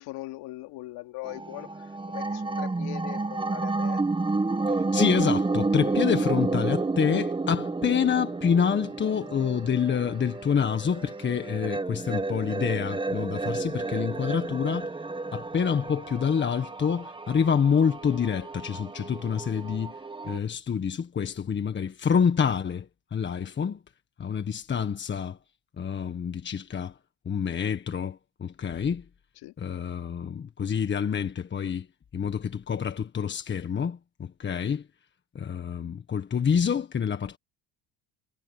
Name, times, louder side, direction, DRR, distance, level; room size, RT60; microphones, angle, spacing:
voice 1, 0.0-4.0 29.4-29.5, left 19 dB, 80° left, 3.1 m, -40 dB
sound 1, 1.2-20.4, right 3 dB, 15° right, 1.3 m, -31 dB
voice 2, 4.7-14.9 15.3-19.9 20.3-22.9 23.1-23.8 24.2-25.4 25.8-26.9 27.2-29.0 29.6-31.9 32.1-34.8 35.3-37.4, left 7 dB, 30° left, 1.5 m, -27 dB
cardioid pair, 110°, 38 cm